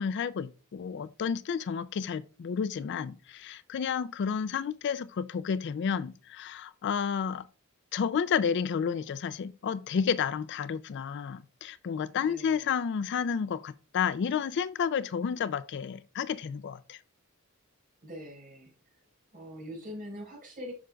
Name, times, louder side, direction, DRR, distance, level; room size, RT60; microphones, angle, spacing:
voice 1, 0.0-7.5 7.9-17.0, left 7 dB, 55° left, 0.3 m, -31 dB
voice 2, 12.2-12.7 18.0-19.0 19.3-20.7, equal, 40° right, 4.2 m, -43 dB
9.2 x 6.2 x 2.3 m
head